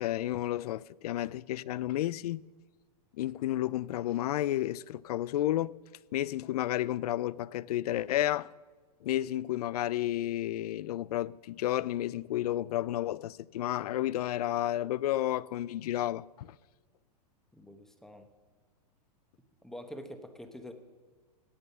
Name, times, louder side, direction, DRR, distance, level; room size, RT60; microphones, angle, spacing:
voice 1, 0.0-2.4 3.2-5.7 6.1-8.5 9.0-16.5, left 13 dB, 70° left, 0.4 m, -31 dB
voice 2, 17.5-18.3 19.6-20.7, equal, ahead, 0.9 m, -45 dB
17.0 x 9.1 x 5.5 m
hypercardioid pair, 145°, 21 cm